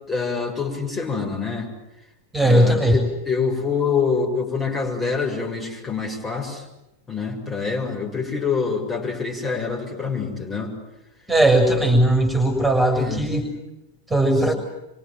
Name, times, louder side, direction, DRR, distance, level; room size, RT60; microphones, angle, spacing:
voice 1, 0.1-1.7 2.4-6.6 7.1-10.7 12.9-13.2, left 5 dB, 20° left, 0 dB, 7.5 m, -26 dB
voice 2, 2.3-3.0 11.3-13.5 14.1-14.5, right 1 dB, 5° right, 5 dB, 6.6 m, -18 dB
27.0 x 26.5 x 7.8 m, 0.92 s
figure-of-eight pair, 90°, 0 cm